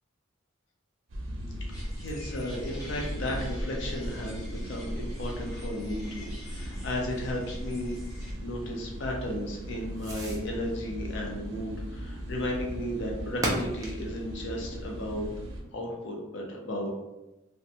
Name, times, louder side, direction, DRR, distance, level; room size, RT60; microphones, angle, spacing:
sound 1, 1.1-15.6, equal, 70° right, 0.5 m, -39 dB
Fireworks, 1.3-15.9, right 1 dB, 15° right, 0.4 m, -43 dB
voice 1, 1.7-8.0 8.4-15.3 15.7-16.9, left 1 dB, 60° left, -1 dB, 0.5 m, -34 dB
sound 2, 1.7-8.3, equal, 20° left, 0.8 m, -40 dB
2.5 x 2.1 x 2.7 m, 0.98 s
head